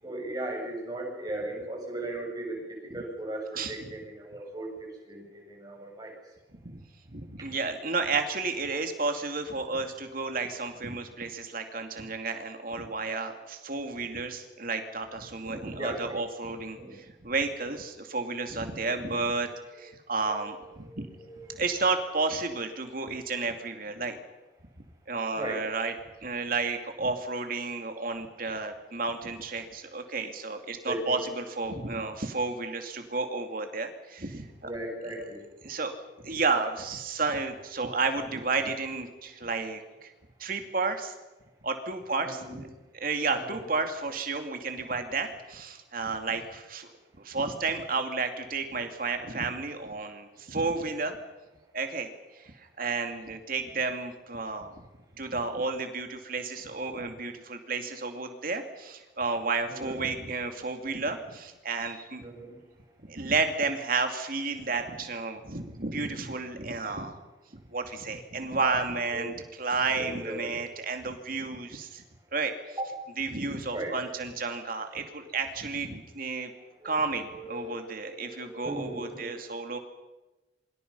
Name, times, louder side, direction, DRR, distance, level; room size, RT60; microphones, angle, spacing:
voice 1, 0.0-2.6 2.9-6.1 7.4-7.5 15.4-16.2 16.8-17.0 19.8-19.9 20.2-21.6 25.4-25.6 30.8-31.3 34.6-35.4 42.2-42.6 43.5-43.6 59.7-60.0 62.2-62.6 69.1-69.3 70.0-70.5 72.8-72.9 73.7-73.9 76.8-77.9 78.2-79.5, right 1 dB, 20° right, -1 dB, 7.3 m, -37 dB
voice 2, 7.1-19.5 19.8-21.1 21.5-24.2 25.1-25.9 26.2-34.5 35.6-35.9 36.2-40.1 40.4-41.1 41.6-42.7 43.0-46.9 47.2-51.2 51.7-52.1 52.3-54.7 55.2-62.2 63.0-67.1 67.7-72.0 72.3-72.5 73.2-76.5 76.8-79.8, right 3 dB, 50° right, 5 dB, 2.7 m, -32 dB
27.5 x 24.5 x 5.6 m, 1.1 s
head